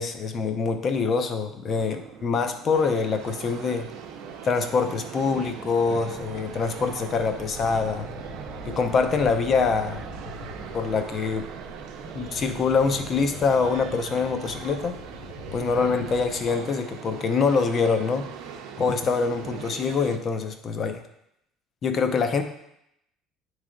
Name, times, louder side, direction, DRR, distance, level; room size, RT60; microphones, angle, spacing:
voice 1, 0.0-3.9 4.4-8.1 8.7-10.0 10.7-11.5 12.1-15.0 15.5-18.3 18.8-21.0 21.8-22.4, left 5 dB, 30° left, 7 dB, 0.5 m, -25 dB
sound 1, 1.7-18.6, right 7 dB, 45° right, 0.5 m, -45 dB
sound 2, 2.7-20.2, right 7 dB, 85° right, 0.7 m, -41 dB
sound 3, 6.1-16.5, left 2 dB, 15° left, 0.9 m, -42 dB
9.3 x 3.2 x 3.7 m, 0.79 s
cardioid pair, 170°, 0 cm